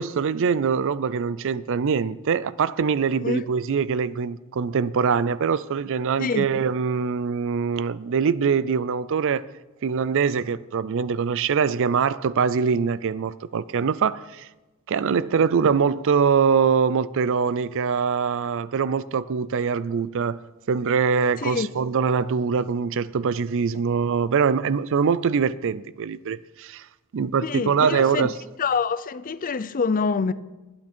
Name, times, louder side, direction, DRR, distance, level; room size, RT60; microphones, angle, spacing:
voice 1, 0.0-9.5 9.8-14.5 14.9-20.4 20.7-26.8 27.1-28.4, right 6 dB, 60° right, 0.4 m, -23 dB
voice 2, 27.4-28.3 28.6-30.3, left 5 dB, 40° left, 0.5 m, -26 dB
20.0 x 8.7 x 4.4 m
head